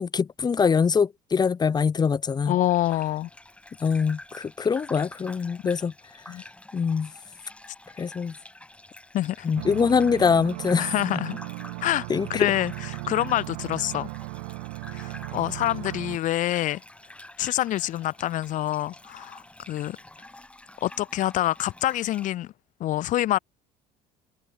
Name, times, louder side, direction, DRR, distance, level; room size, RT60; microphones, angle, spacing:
voice 1, 0.0-2.5 3.8-5.9 6.7-7.1 8.0-8.3 9.4-10.9 12.1-12.5, left 6 dB, 30° left, 1.0 m, -23 dB
voice 2, 2.5-3.3 6.3-6.4 9.1-9.5 10.8-11.4 11.8-14.1 14.9-16.8 17.4-20.0 20.8-22.5 22.8-23.4, left 14 dB, 60° left, 2.3 m, -26 dB
Gurgling / Bathtub (filling or washing), 2.6-22.3, left 1 dB, 10° left, 5.5 m, -48 dB
sound 1, 9.5-16.2, right 32 dB, 85° right, 1.7 m, -36 dB
supercardioid pair, 90°, 15 cm